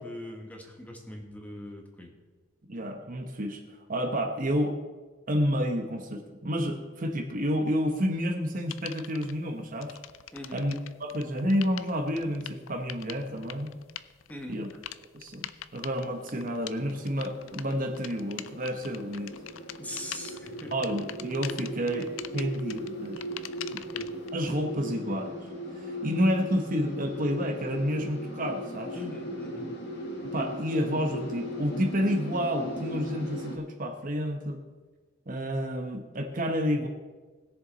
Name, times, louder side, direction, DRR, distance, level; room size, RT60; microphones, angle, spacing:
voice 1, 0.0-2.1 10.3-10.6 14.3-14.6 19.8-20.9 23.3-24.1 28.9-29.7, left 1 dB, 10° left, 1 dB, 1.5 m, -42 dB
voice 2, 2.7-3.6 3.9-4.8 5.3-10.0 10.5-10.7 11.0-13.7 14.5-14.7 15.1-19.3 20.7-23.2 24.3-25.3 25.8-29.0 30.3-34.6 35.3-36.9, equal, 45° right, 5 dB, 1.1 m, -30 dB
sound 1, 8.7-9.3 9.8-24.3, left 11 dB, 90° left, 0.5 m, -43 dB
sound 2, 15.8-33.6, equal, 60° left, 2.0 m, -39 dB
19.5 x 6.9 x 4.0 m, 1.3 s
head